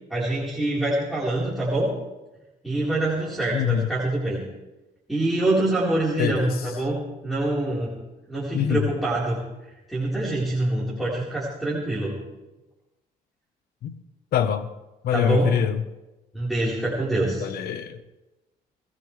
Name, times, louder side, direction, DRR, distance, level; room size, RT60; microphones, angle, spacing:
voice 1, 0.1-1.9 2.6-4.4 5.1-7.9 8.3-9.4 9.9-12.1 15.1-15.5 16.3-17.5, right 2 dB, ahead, -9 dB, 4.2 m, -25 dB
voice 2, 3.5-3.9 6.2-6.6 8.5-8.9 13.8-14.0 14.3-14.7 15.0-15.8 17.4-18.0, left 9 dB, 65° left, 10 dB, 1.1 m, -24 dB
22.0 x 17.0 x 3.3 m, 1.0 s
cardioid pair, 110°, 17 cm